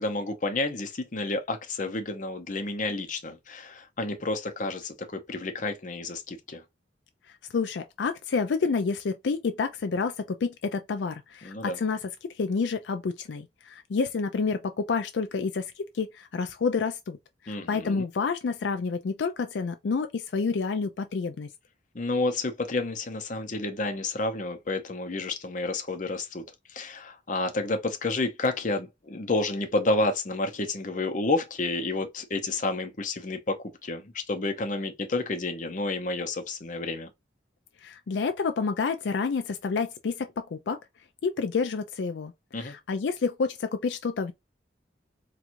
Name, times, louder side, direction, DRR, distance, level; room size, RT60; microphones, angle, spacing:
voice 1, 0.0-6.6 11.4-11.8 17.5-18.1 21.9-26.4 26.7-37.1 42.5-42.7, left 2 dB, 45° left, 0.7 m, -30 dB
voice 2, 7.5-10.1 10.4-12.0 12.4-17.2 17.4-21.5 37.8-40.8 41.2-42.3 42.6-44.3, left 4 dB, 80° left, 0.4 m, -29 dB
4.4 x 2.4 x 2.5 m
head